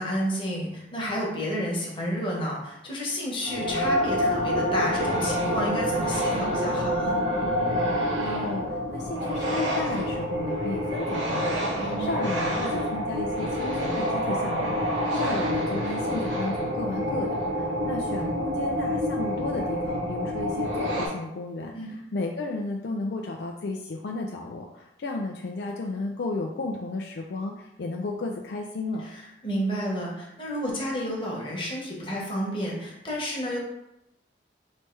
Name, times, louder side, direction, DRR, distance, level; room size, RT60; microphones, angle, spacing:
voice 1, 0.0-7.2 11.7-12.2 21.7-22.0 29.0-33.6, equal, 30° left, -3 dB, 1.1 m, -31 dB
sound 1, 3.4-21.1, equal, 85° right, 1.1 m, -27 dB
voice 2, 8.2-29.0, left 2 dB, 65° left, 1 dB, 0.4 m, -33 dB
3.3 x 3.1 x 4.5 m, 0.87 s
head